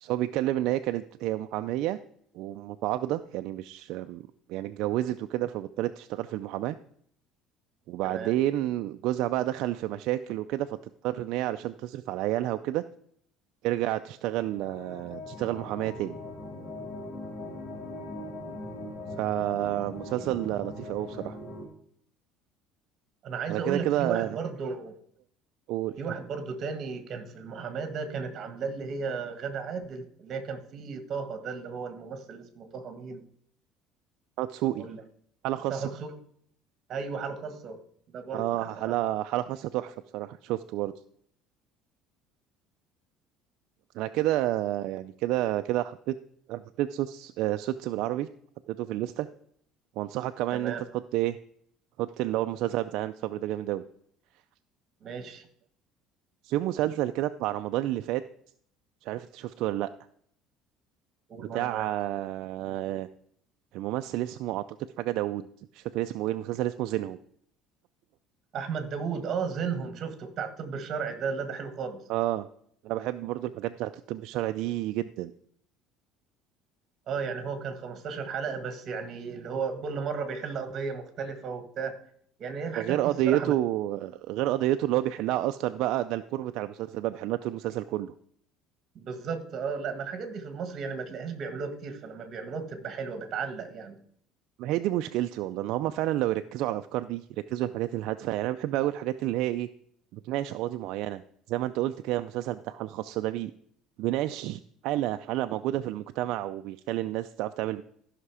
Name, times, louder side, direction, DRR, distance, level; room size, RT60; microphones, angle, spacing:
voice 1, 0.0-2.0 2.3-6.8 7.9-10.8 11.0-12.8 13.6-16.2 19.2-21.4 23.5-24.4 25.7-26.0 34.4-34.9 35.4-35.9 38.3-40.9 43.9-46.2 46.5-48.3 48.7-49.3 50.0-50.8 51.1-51.4 52.0-53.8 56.4-58.2 59.0-59.9 61.4-63.1 63.7-64.6 65.0-67.2 72.1-72.5 72.8-75.3 82.8-88.1 94.6-99.7 100.1-101.2 101.5-103.5 104.0-107.8, right 14 dB, 65° right, 9 dB, 0.4 m, -30 dB
sound 1, 14.3-21.7, left 1 dB, 30° left, 2.4 m, -40 dB
voice 2, 23.2-24.9 26.0-33.2 34.8-35.0 35.7-36.1 36.9-37.8 38.1-38.9 50.5-50.8 55.0-55.5 61.3-61.9 68.5-72.0 77.1-81.9 82.4-83.5 88.9-94.0, right 5 dB, 40° right, 9 dB, 1.6 m, -34 dB
14.0 x 5.8 x 4.8 m, 0.65 s
cardioid pair, 140°, 0 cm